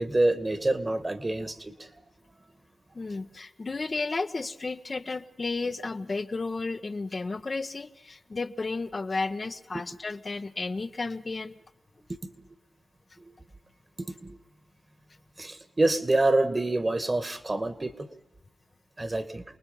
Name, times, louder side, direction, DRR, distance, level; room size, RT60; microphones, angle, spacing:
voice 1, 0.0-1.7 13.2-13.3 14.0-14.4 15.4-17.9 19.0-19.4, right 2 dB, 35° right, 10 dB, 2.1 m, -26 dB
voice 2, 2.9-11.6, left 3 dB, 50° left, 7 dB, 1.1 m, -33 dB
28.0 x 19.5 x 5.5 m, 0.89 s
supercardioid pair, 40°, 0 cm